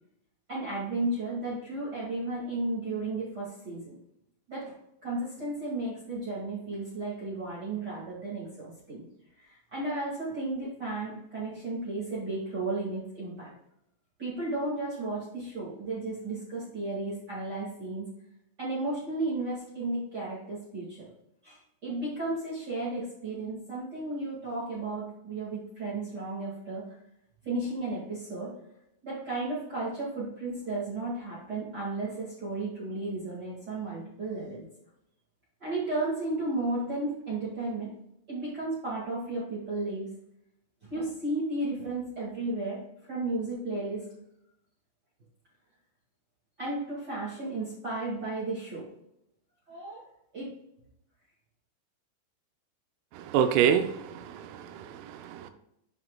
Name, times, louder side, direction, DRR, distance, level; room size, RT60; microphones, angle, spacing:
voice 1, 0.5-4.0 4.5-4.7 5.0-9.0 9.4-13.5 14.2-18.1 18.6-21.1 21.4-27.0 27.4-28.5 29.0-34.6 35.6-37.9 38.3-40.1 40.8-42.8 43.1-44.0 46.6-48.8 49.7-50.0 50.3-50.5, right 2 dB, 45° right, -7 dB, 1.3 m, -34 dB
voice 2, 53.1-55.5, right 8 dB, 90° right, 8 dB, 3.3 m, -27 dB
9.2 x 5.8 x 2.3 m, 0.79 s
omnidirectional pair, 5.7 m